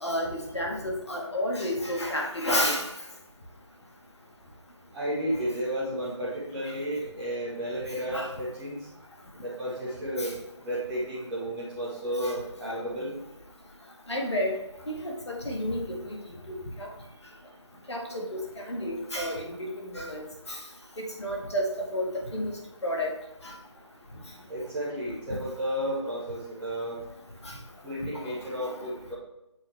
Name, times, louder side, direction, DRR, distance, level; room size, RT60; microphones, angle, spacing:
voice 1, 0.0-2.8 8.1-8.3 10.2-10.3 14.1-14.6 14.9-16.2 16.5-16.9 17.9-18.4 18.7-19.5 19.9-20.2 21.2-22.1 22.3-22.5 22.8-23.1, equal, 65° left, 0 dB, 1.7 m, -30 dB
voice 2, 4.9-8.8 9.4-10.3 10.6-13.1 24.5-27.0 27.8-29.1, equal, 5° right, -8 dB, 1.0 m, -32 dB
7.9 x 4.1 x 3.3 m, 0.90 s
figure-of-eight pair, 155°, 16 cm